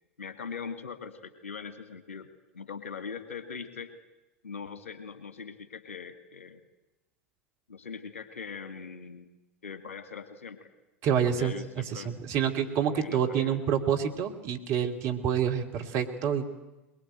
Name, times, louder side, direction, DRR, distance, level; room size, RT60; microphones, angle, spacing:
voice 1, 0.2-2.3 2.5-3.9 4.4-6.6 7.7-10.7 11.2-12.1 12.9-13.6, left 6 dB, 75° left, 10 dB, 1.8 m, -41 dB
voice 2, 11.0-11.5 11.9-16.5, right 8 dB, 45° right, 4 dB, 2.7 m, -27 dB
21.5 x 21.5 x 9.1 m, 1.0 s
figure-of-eight pair, 80°, 7 cm